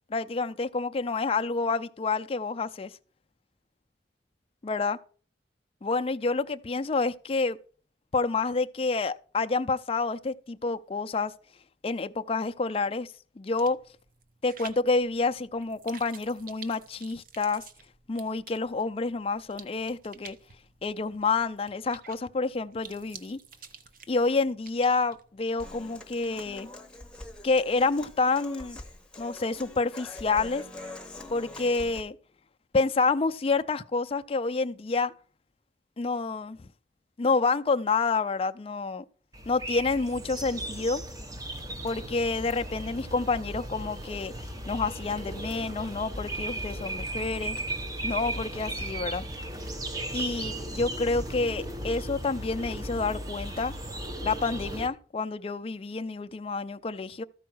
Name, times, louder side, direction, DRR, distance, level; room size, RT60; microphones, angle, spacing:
voice 1, 0.1-2.9 4.6-5.0 5.8-7.6 8.1-11.3 11.8-13.8 14.4-17.6 18.1-20.4 20.8-23.4 24.1-26.7 27.4-28.8 29.2-30.6 31.3-32.2 32.7-35.1 36.0-36.6 37.2-39.0 39.5-41.0 41.8-44.3 44.7-47.6 48.0-49.2 50.1-53.7 54.2-57.2, left 3 dB, 35° left, 0.4 m, -28 dB
sound 1, 13.5-26.6, right 6 dB, 50° right, 0.8 m, -51 dB
Human voice / Acoustic guitar, 25.6-32.0, left 2 dB, 5° left, 1.0 m, -44 dB
sound 2, 39.3-54.9, right 1 dB, 20° right, 0.9 m, -36 dB
13.5 x 4.7 x 6.1 m
head